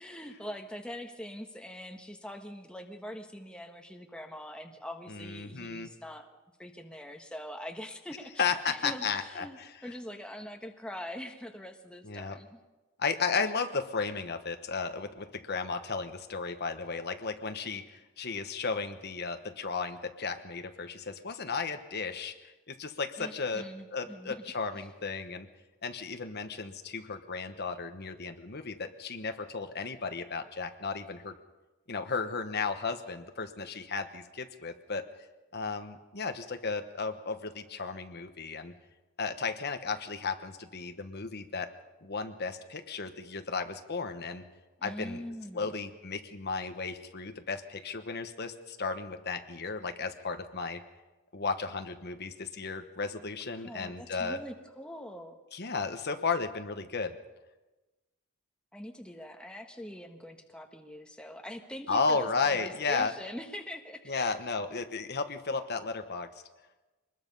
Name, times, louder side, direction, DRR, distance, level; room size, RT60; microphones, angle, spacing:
voice 1, 0.0-6.3 6.6-12.6 23.2-24.4 24.7-24.9 44.8-45.7 53.6-55.4 58.7-64.3, left 1 dB, 5° left, 4 dB, 1.4 m, -43 dB
voice 2, 5.1-5.9 8.4-9.7 12.0-12.4 13.0-23.6 23.9-25.5 25.8-31.3 31.9-35.0 35.5-38.7 39.2-41.7 42.0-44.4 44.8-45.2 45.5-50.8 51.3-54.4 55.5-57.1 61.9-63.1 64.1-66.3, left 4 dB, 50° left, 7 dB, 1.2 m, -34 dB
24.5 x 21.0 x 5.5 m, 1.2 s
head